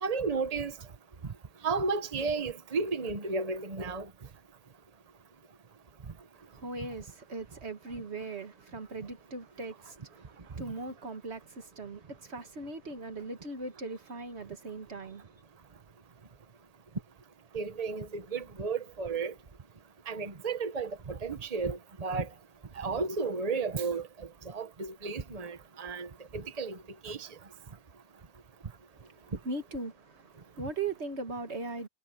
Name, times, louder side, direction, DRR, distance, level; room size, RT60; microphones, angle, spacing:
voice 1, 0.0-0.7 1.6-4.1 17.5-19.3 20.1-22.3 22.8-26.8 27.0-27.3, right 4 dB, 35° right, 1.2 m, -33 dB
voice 2, 6.3-15.4 28.9-31.9, right 3 dB, 70° right, 2.0 m, -40 dB
omnidirectional pair, 1.2 m